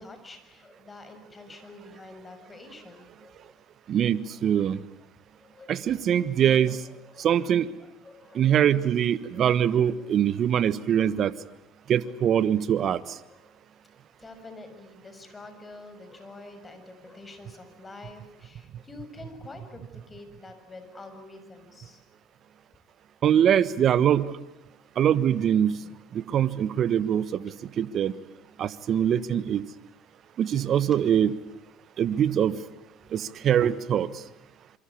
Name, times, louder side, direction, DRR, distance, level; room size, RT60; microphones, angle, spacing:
voice 1, 0.0-3.5 5.4-6.2 6.7-6.8 7.0-7.3 8.0-8.7 9.3-9.5 10.9-11.1 12.0-12.2 13.3-13.4 14.2-22.0 30.9-31.0, left 2 dB, 25° left, 8 dB, 6.8 m, -47 dB
voice 2, 3.9-4.8 5.7-6.8 7.2-7.7 8.3-11.3 11.9-13.0 23.2-24.3 25.0-25.8 26.1-28.1 28.6-29.6 30.4-31.3 32.0-32.6 33.1-34.1, right 9 dB, 50° right, 17 dB, 1.3 m, -23 dB
27.5 x 24.5 x 8.6 m, 0.85 s
hypercardioid pair, 70°, 0 cm